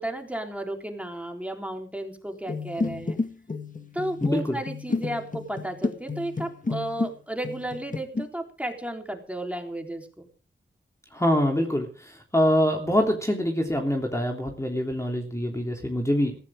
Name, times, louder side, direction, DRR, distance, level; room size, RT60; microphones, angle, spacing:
voice 1, 0.0-3.2 3.9-10.3, right 1 dB, 5° right, 3 dB, 3.9 m, -33 dB
sound 1, 2.5-7.1 7.4-8.2, left 3 dB, 40° left, 2.0 m, -31 dB
voice 2, 4.2-4.6 11.1-16.4, equal, 15° left, 2 dB, 3.2 m, -25 dB
19.0 x 15.5 x 3.7 m, 0.39 s
cardioid pair, 65°, 21 cm